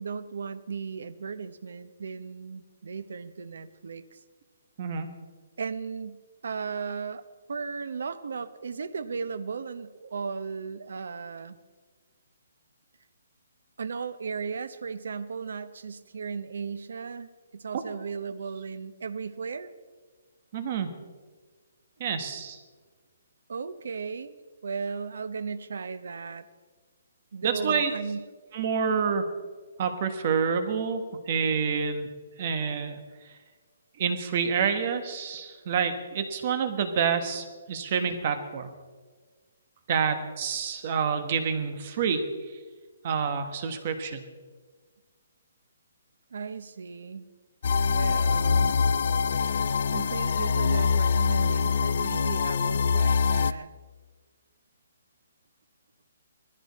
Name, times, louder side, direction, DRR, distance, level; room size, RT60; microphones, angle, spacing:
voice 1, 0.0-4.2 5.6-11.6 13.8-19.7 23.5-24.4 24.6-26.5 27.3-28.3 46.3-47.3 47.9-48.8 49.9-53.7, right 5 dB, 70° right, 12 dB, 1.0 m, -36 dB
voice 2, 20.5-20.9 22.0-22.6 27.4-27.9 28.5-29.2 29.8-32.1 32.4-33.0 34.0-38.7 39.9-42.2 43.0-44.2, right 6 dB, 30° right, 8 dB, 1.4 m, -28 dB
sound 1, 47.6-53.5, left 5 dB, 45° left, 0.5 m, -24 dB
19.5 x 14.5 x 4.2 m, 1.4 s
hypercardioid pair, 175°, 0 cm